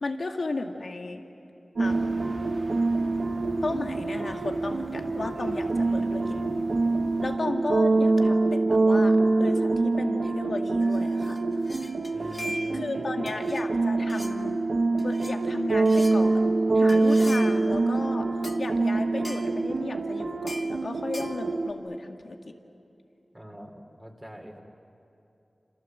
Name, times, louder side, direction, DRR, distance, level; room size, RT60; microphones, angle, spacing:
voice 1, 0.0-1.2 1.8-2.2 3.6-6.2 7.2-11.4 12.7-14.6 15.0-16.4 16.7-18.3 18.6-22.5, left 3 dB, 70° left, 4 dB, 2.1 m, -34 dB
sound 1, 1.8-7.4, right 1 dB, 40° right, 2.5 m, -43 dB
sound 2, 1.8-21.7, right 3 dB, 80° right, 1.3 m, -25 dB
voice 2, 5.7-6.5 12.1-13.3 23.3-24.6, equal, 15° right, 1 dB, 3.4 m, -43 dB
sound 3, 10.8-12.9 13.3-13.7 14.1-14.4 15.0-15.4 15.8-16.2 16.9-17.7 18.4-18.6 19.2-19.5 20.5-20.7 21.1-21.4, left 1 dB, 25° left, 1.8 m, -40 dB
28.0 x 27.0 x 7.6 m, 2.8 s
cardioid pair, 45°, 0 cm